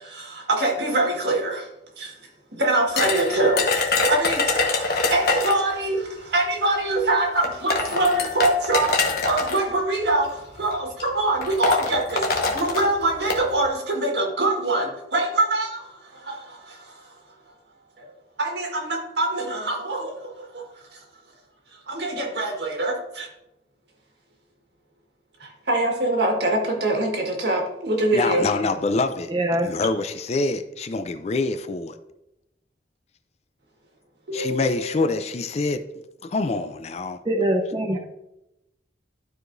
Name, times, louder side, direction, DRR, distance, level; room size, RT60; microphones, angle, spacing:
voice 1, 0.0-1.7 2.0-2.1 2.5-17.1 18.0-18.1 18.4-20.6 20.9-21.0 21.9-23.3 25.4-28.5 34.3-34.8, right 2 dB, 65° right, 1.6 m, -24 dB
sound 1, 3.0-5.7 6.8-6.9 7.4-9.6 10.5-10.7 11.0-11.1 11.4-13.4, left 3 dB, 55° left, 1.1 m, -24 dB
voice 2, 28.1-29.3 29.6-32.0 34.3-35.8 36.2-37.2, left 3 dB, 35° left, 0.4 m, -25 dB
voice 3, 29.3-29.7 37.3-38.0, right 1 dB, 25° right, 0.6 m, -23 dB
12.0 x 4.8 x 2.6 m
head